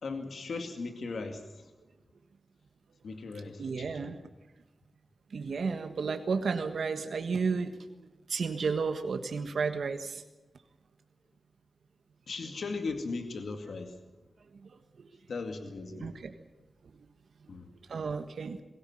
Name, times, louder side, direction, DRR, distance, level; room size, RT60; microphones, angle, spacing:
voice 1, 0.0-1.7 3.0-4.1 12.3-14.0 15.3-16.1 17.5-17.7, left 3 dB, 85° left, 5 dB, 2.3 m, -38 dB
voice 2, 3.6-4.2 5.3-7.9 8.3-10.2 14.6-14.7 16.0-16.3 17.9-18.6, right 5 dB, 90° right, 7 dB, 1.5 m, -32 dB
22.0 x 17.5 x 9.0 m, 1.1 s
cardioid pair, 65°, 0 cm